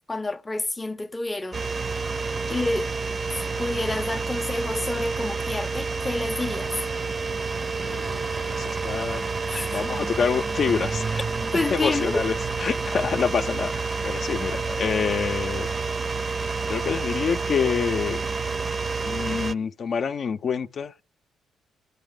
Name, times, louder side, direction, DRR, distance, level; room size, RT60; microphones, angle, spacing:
voice 1, 0.1-1.6 2.5-2.9 3.6-6.8 9.5-9.8 11.5-12.2, left 2 dB, 15° left, 0.7 m, -28 dB
sound 1, 1.5-19.5, right 4 dB, 30° right, 0.7 m, -29 dB
voice 2, 7.8-9.2 9.7-11.2 11.7-12.3 12.6-15.7 16.7-18.2 19.0-21.0, left 6 dB, 50° left, 0.6 m, -27 dB
28.5 x 9.7 x 3.8 m
cardioid pair, 90°, 0 cm